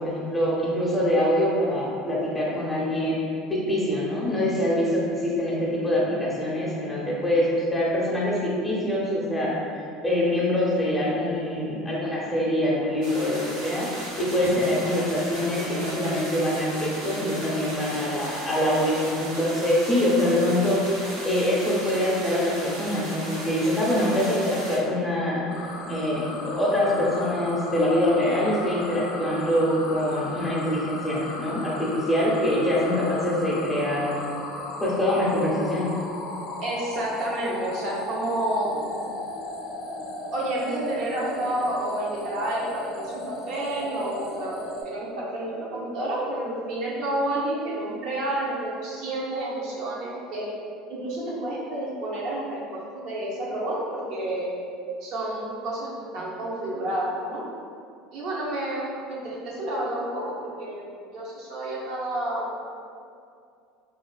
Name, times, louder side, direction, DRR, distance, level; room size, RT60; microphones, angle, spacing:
voice 1, 0.0-3.2 3.5-25.4 25.9-34.2 34.8-35.9, left 1 dB, 10° left, -6 dB, 0.6 m, -24 dB
sound 1, 13.0-24.8, equal, 85° right, 0.9 m, -36 dB
sound 2, 25.5-44.8, left 2 dB, 60° left, 0.4 m, -36 dB
voice 2, 36.6-38.9 40.3-44.5 44.8-50.5 50.9-54.5 55.0-57.4 58.1-60.9 61.1-62.5, right 1 dB, 60° right, -5 dB, 0.7 m, -30 dB
2.4 x 2.3 x 2.2 m, 2.4 s
supercardioid pair, 105°, 0 cm